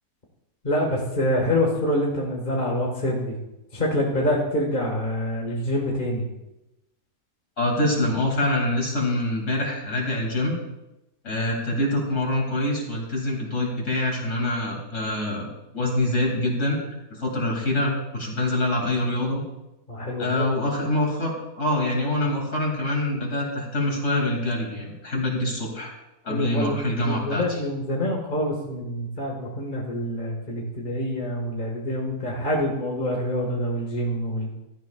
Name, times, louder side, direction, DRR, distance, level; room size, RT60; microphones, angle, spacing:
voice 1, 0.6-3.4 3.7-6.3 19.9-20.5 26.3-34.5, left 1 dB, 30° left, -2 dB, 1.7 m, -26 dB
voice 2, 7.6-10.5 11.2-15.5 15.7-16.8 17.1-19.4 20.2-25.9 26.2-27.4, left 1 dB, 45° left, -1 dB, 2.9 m, -25 dB
16.0 x 13.0 x 2.4 m, 0.96 s
omnidirectional pair, 1.8 m